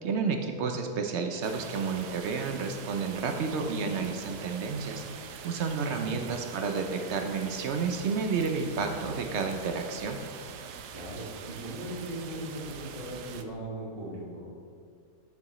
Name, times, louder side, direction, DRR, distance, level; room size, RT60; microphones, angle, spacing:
voice 1, 0.0-5.0 5.4-10.2, right 5 dB, 65° right, 5 dB, 0.7 m, -31 dB
sound 1, 1.4-13.4, right 7 dB, 85° right, 1.1 m, -44 dB
voice 2, 6.0-6.4 10.9-14.4, right 1 dB, 35° right, -5 dB, 1.7 m, -39 dB
8.3 x 6.9 x 3.0 m, 2.2 s
omnidirectional pair, 1.7 m